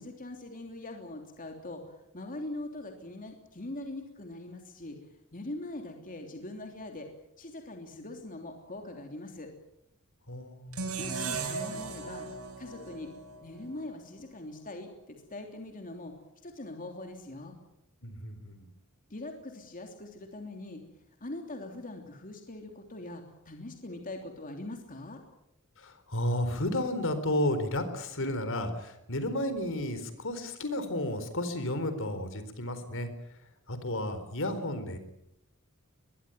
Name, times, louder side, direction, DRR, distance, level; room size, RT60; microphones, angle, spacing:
voice 1, 0.0-5.0 5.3-7.1 7.4-9.5 11.0-12.3 12.6-13.1 13.4-16.1 16.4-17.5 19.1-20.8 21.2-25.2, left 2 dB, 40° left, 3 dB, 3.2 m, -42 dB
voice 2, 10.3-10.9 18.0-18.7 25.8-33.1 33.7-35.0, left 1 dB, 65° left, 11 dB, 4.2 m, -32 dB
sound 1, 10.7-13.9, right 4 dB, 85° right, 5.1 m, -37 dB
22.5 x 22.0 x 9.2 m, 0.82 s
head